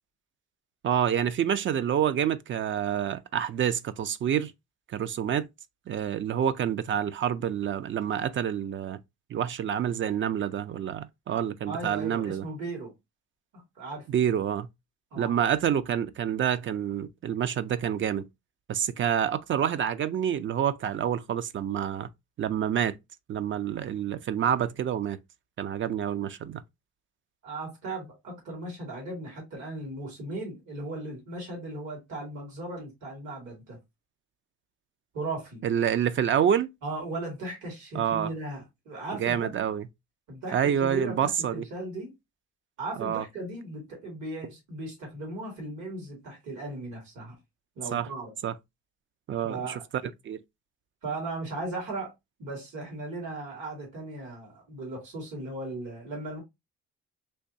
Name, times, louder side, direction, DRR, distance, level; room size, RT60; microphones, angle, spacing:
voice 1, 0.8-4.5 4.9-5.5 5.9-9.0 9.3-12.5 14.1-14.7 15.2-18.3 18.7-22.1 22.4-22.9 23.3-25.2 25.6-26.6 35.6-36.7 37.9-38.3 39.2-39.9 40.5-41.7 43.0-43.2 47.9-48.1 48.4-48.5 49.3-49.8 50.3-50.4, right 9 dB, 40° right, 0.4 m, -27 dB
voice 2, 11.7-12.9 13.5-14.1 15.1-15.4 27.4-33.8 35.1-35.6 36.8-39.5 40.3-42.1 42.8-47.4 47.8-48.3 49.4-49.8 51.0-52.1 52.4-56.4, right 2 dB, 70° right, 2.0 m, -37 dB
3.3 x 3.0 x 2.6 m
cardioid pair, 90°, 30 cm